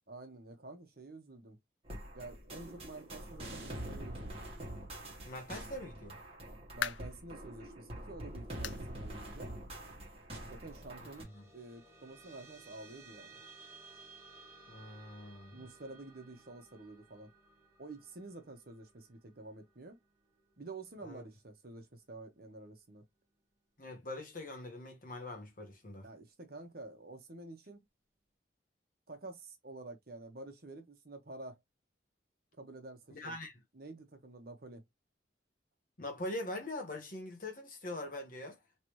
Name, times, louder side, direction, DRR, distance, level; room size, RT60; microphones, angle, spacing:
voice 1, 0.1-1.6 2.1-4.4 6.7-9.5 10.5-13.4 15.5-17.3 17.8-20.0 20.6-23.0 26.0-27.9 29.1-31.6 32.6-33.4 33.7-34.8, right 2 dB, 55° right, 1.1 m, -49 dB
sound 1, 1.8-11.2, right 1 dB, 30° right, 1.4 m, -45 dB
voice 2, 5.3-6.2 11.0-11.1 11.3-11.4 14.7-15.6 21.0-21.2 23.8-26.1 33.1-33.5 36.0-38.6, left 1 dB, 45° left, 1.2 m, -43 dB
sound 2, 6.2-7.2 7.7-7.9 8.6-8.9 9.2-9.3 9.8-9.9 11.0-11.1, left 9 dB, 80° left, 0.4 m, -40 dB
sound 3, 10.4-21.2, right 3 dB, 15° right, 1.0 m, -58 dB
3.3 x 2.9 x 3.1 m
head